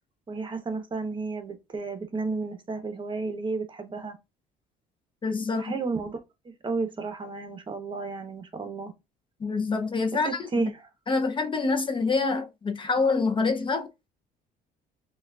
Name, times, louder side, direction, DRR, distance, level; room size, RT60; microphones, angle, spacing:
voice 1, 0.3-4.2 5.6-6.2 6.4-8.9 10.2-10.7, right 4 dB, 30° right, 0.9 m, -32 dB
voice 2, 5.2-5.8 9.4-10.7 11.1-13.9, left 4 dB, 30° left, 0.6 m, -26 dB
6.1 x 2.4 x 2.4 m
cardioid pair, 110°, 17 cm